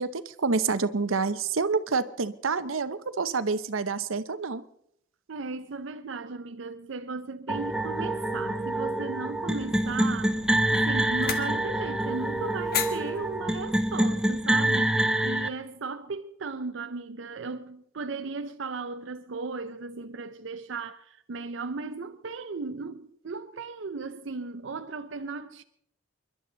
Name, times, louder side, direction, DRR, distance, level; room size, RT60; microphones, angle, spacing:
voice 1, 0.0-4.6, right 4 dB, 90° right, 0.8 m, -28 dB
voice 2, 5.3-10.4 10.7-25.6, right 4 dB, 65° right, 0.6 m, -36 dB
sound 1, 7.5-15.5, right 1 dB, 5° right, 0.7 m, -26 dB
sound 2, 9.4-14.7, left 7 dB, 50° left, 1.4 m, -38 dB
29.0 x 11.5 x 3.9 m
head